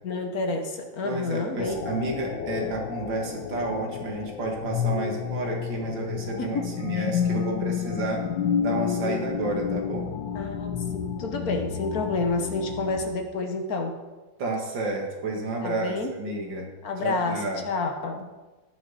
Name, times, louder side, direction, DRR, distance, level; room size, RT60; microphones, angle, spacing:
voice 1, 0.0-1.8 6.4-6.7 10.3-13.9 15.6-16.1 16.8-18.3, left 3 dB, 55° left, 4 dB, 1.4 m, -29 dB
voice 2, 1.0-8.3 8.6-10.1 14.4-16.7 17.0-17.6, right 2 dB, 65° right, 0 dB, 2.5 m, -31 dB
sound 1, 1.6-13.1, left 8 dB, 70° left, 1.4 m, -30 dB
17.5 x 6.0 x 4.1 m, 1.2 s
omnidirectional pair, 2.1 m